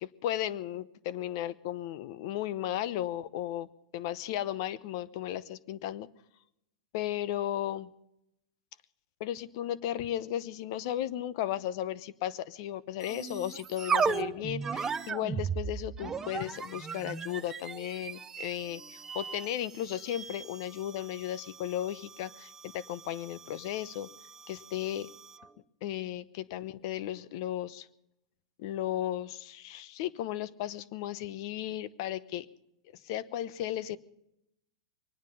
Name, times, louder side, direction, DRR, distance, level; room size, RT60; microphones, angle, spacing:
voice 1, 0.0-3.7 3.9-6.1 6.9-7.9 9.2-24.1 24.5-25.1 25.8-27.9 28.6-32.5 32.9-34.0, left 12 dB, 50° left, 17 dB, 0.9 m, -35 dB
sound 1, 13.0-25.5, right 6 dB, 15° right, 0.6 m, -37 dB
24.0 x 9.6 x 5.5 m, 0.81 s
supercardioid pair, 145°, 3 cm